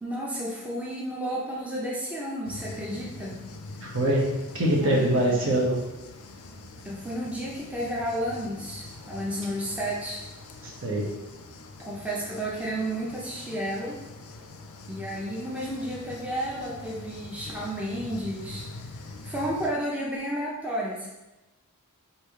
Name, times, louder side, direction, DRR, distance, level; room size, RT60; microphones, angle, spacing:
voice 1, 0.0-3.4 4.8-5.1 6.8-10.2 11.8-14.0 14.9-18.6 19.2-21.1, right 1 dB, 5° right, -5 dB, 0.5 m, -32 dB
sound 1, 2.4-19.7, left 2 dB, 80° left, 0.5 m, -44 dB
voice 2, 3.8-4.2 4.5-5.8 10.8-11.0, right 1 dB, 60° right, -3 dB, 1.0 m, -23 dB
3.3 x 2.7 x 4.6 m, 1.0 s
head